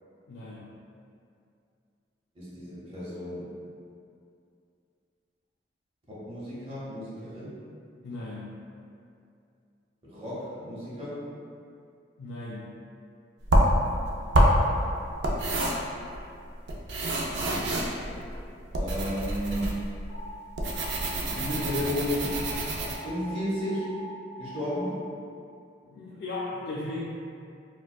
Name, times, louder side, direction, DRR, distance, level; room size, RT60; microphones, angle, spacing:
voice 1, 0.3-0.7 8.0-8.6 12.2-12.7 25.8-27.0, left 2 dB, 70° left, -7 dB, 0.4 m, -37 dB
voice 2, 2.3-3.5 6.1-7.5 10.0-11.2 14.8-15.1 17.9-18.3 18.7-19.7 21.2-22.3 23.0-23.9 24.4-25.0, equal, 35° right, -10 dB, 1.0 m, -33 dB
sound 1, 13.4-22.9, right 1 dB, 80° right, 0.4 m, -26 dB
sound 2, 20.1-24.9, equal, 15° left, 1.2 m, -42 dB
4.3 x 2.3 x 2.3 m, 2.5 s
head